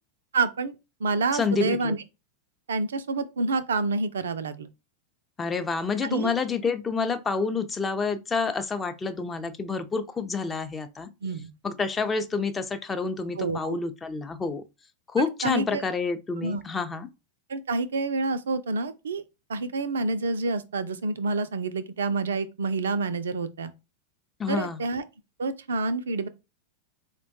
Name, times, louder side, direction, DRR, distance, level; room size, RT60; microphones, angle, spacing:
voice 1, 0.3-0.7 1.0-2.0 2.7-4.7 6.0-6.3 11.2-11.5 13.4-13.8 15.2-15.9 16.4-16.6 17.5-19.2 19.5-23.7 24.5-25.0 25.4-26.3, right 3 dB, 65° right, 0.3 m, -28 dB
voice 2, 1.3-2.0 5.4-11.1 11.6-14.6 15.1-17.1 24.4-24.8, left 4 dB, 15° left, 0.5 m, -28 dB
4.3 x 2.2 x 2.6 m
figure-of-eight pair, 90°, 0 cm